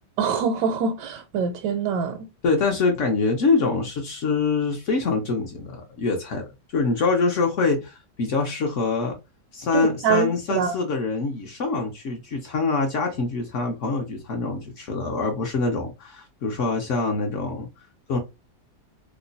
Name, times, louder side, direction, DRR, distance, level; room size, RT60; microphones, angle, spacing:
voice 1, 0.2-2.3 9.7-10.8, right 6 dB, 80° right, 1.2 m, -24 dB
voice 2, 2.4-6.4 6.7-9.2 9.5-17.7 18.1-18.2, left 4 dB, 60° left, 0.8 m, -24 dB
3.0 x 2.1 x 3.8 m
omnidirectional pair, 1.9 m